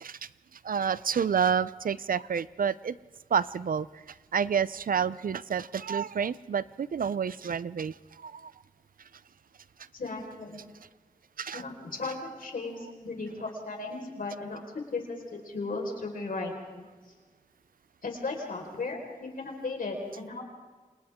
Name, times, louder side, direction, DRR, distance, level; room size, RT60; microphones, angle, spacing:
voice 1, 0.6-3.0 3.3-3.9 4.3-8.5 11.4-11.6, right 7 dB, 85° right, 17 dB, 0.6 m, -29 dB
voice 2, 9.9-10.6 11.5-16.9 18.0-20.4, left 3 dB, 85° left, 1 dB, 4.7 m, -36 dB
29.0 x 27.0 x 3.7 m, 1.4 s
wide cardioid pair, 65°, 14 cm